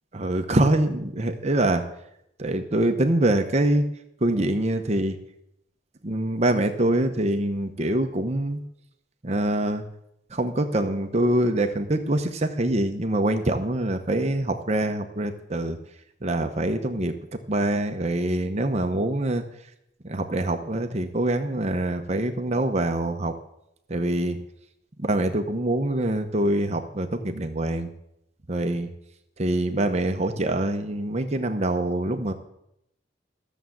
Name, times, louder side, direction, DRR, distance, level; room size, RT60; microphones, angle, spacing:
voice 1, 0.1-1.8 2.4-3.8 4.2-5.2 6.0-8.6 9.2-9.8 10.3-15.8 16.2-17.1 17.5-19.4 20.0-23.3 23.9-24.4 25.0-27.9 28.5-28.9 29.4-32.3, right 1 dB, 35° right, 6 dB, 0.8 m, -24 dB
13.5 x 7.2 x 7.7 m, 0.79 s
head